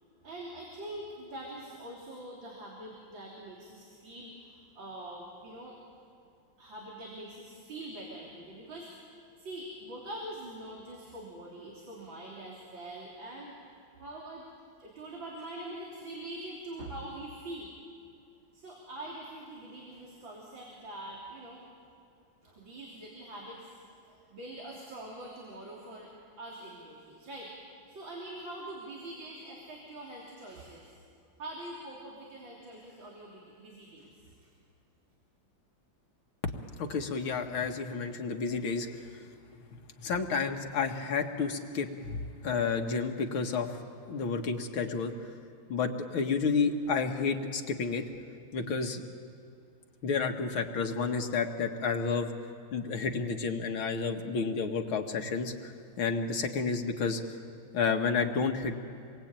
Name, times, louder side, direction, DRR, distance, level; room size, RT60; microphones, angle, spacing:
voice 1, 0.2-5.8 6.6-8.9 9.4-13.6 14.0-14.4 14.8-17.7 18.5-21.7 22.4-26.1 26.4-27.5 27.9-31.0 31.4-34.4, right 1 dB, 70° right, -3 dB, 4.1 m, -44 dB
voice 2, 36.4-38.9 40.0-43.8 44.1-45.1 45.7-48.0 48.5-49.0 50.0-52.3 52.7-55.7 56.0-57.2 57.7-58.8, left 5 dB, 85° left, 3 dB, 2.4 m, -30 dB
27.5 x 22.5 x 9.0 m, 2.5 s
omnidirectional pair, 2.2 m